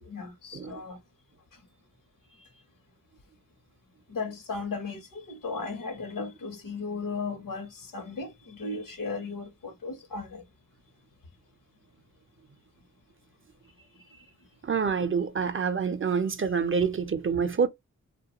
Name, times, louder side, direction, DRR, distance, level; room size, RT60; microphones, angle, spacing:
voice 1, 0.0-1.0 4.1-10.4, left 4 dB, 80° left, 0.8 m, -36 dB
voice 2, 14.6-17.7, right 6 dB, 40° right, 0.5 m, -27 dB
2.3 x 2.2 x 2.8 m
cardioid pair, 45°, 33 cm